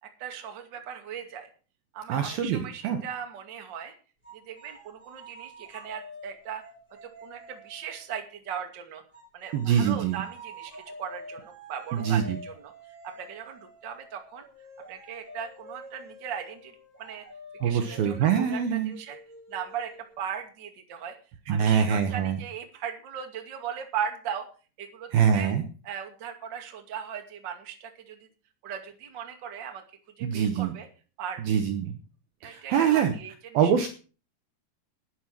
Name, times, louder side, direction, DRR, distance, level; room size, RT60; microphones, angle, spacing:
voice 1, 0.0-1.5 1.9-3.9 4.3-6.6 7.0-9.0 9.3-12.7 13.0-14.4 14.9-17.3 17.6-19.2 19.5-21.2 21.5-24.5 24.8-25.5 25.8-28.3 28.6-29.8 30.2-30.9 31.2-31.5 32.4-33.7, right 8 dB, 35° right, 4 dB, 2.0 m, -38 dB
voice 2, 2.1-3.0 9.5-10.2 11.9-12.2 17.6-18.9 21.5-22.4 25.1-25.6 30.2-30.7 31.5-31.9 32.4-33.1 33.5-33.9, right 8 dB, 70° right, 7 dB, 2.6 m, -24 dB
sound 1, 4.2-8.1 9.1-20.4, equal, ahead, 7.5 m, -48 dB
12.5 x 10.0 x 6.0 m, 0.37 s
omnidirectional pair, 5.3 m